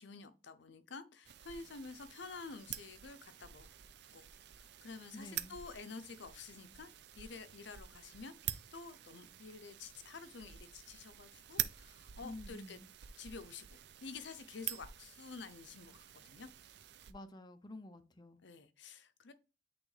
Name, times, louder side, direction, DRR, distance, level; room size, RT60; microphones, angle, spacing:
voice 1, 0.0-3.7 4.1-4.3 4.6-6.9 7.2-8.3 8.7-12.8 13.2-16.5 18.4-19.3, left 4 dB, 65° left, 0.6 m, -50 dB
sound 1, 1.2-17.1, right 12 dB, 55° right, 0.5 m, -47 dB
voice 2, 5.1-5.6 12.2-12.9 17.1-18.4, left 1 dB, 20° left, 0.5 m, -50 dB
8.5 x 3.5 x 3.3 m
head